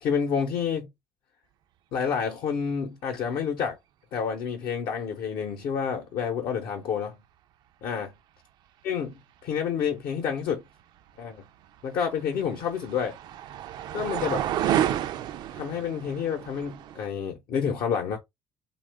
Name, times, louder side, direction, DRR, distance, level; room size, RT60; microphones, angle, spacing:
voice 1, 0.0-0.9 1.9-3.8 4.1-7.2 7.8-8.1 8.8-10.6 11.2-11.4 11.8-13.2 13.9-14.4 15.5-18.2, left 7 dB, 75° left, 0.8 m, -29 dB
sound 1, 11.8-17.1, right 11 dB, 70° right, 0.3 m, -30 dB
3.0 x 2.3 x 3.4 m
cardioid pair, 85°, 8 cm